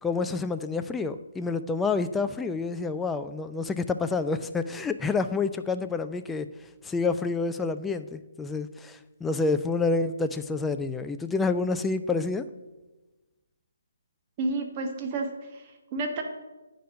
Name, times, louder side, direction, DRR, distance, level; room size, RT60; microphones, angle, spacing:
voice 1, 0.0-6.5 6.8-12.4, left 4 dB, 5° left, 8 dB, 0.4 m, -28 dB
voice 2, 14.4-16.2, right 3 dB, 30° right, 3 dB, 1.3 m, -31 dB
9.0 x 5.2 x 6.8 m, 1.1 s
figure-of-eight pair, 145°, 0 cm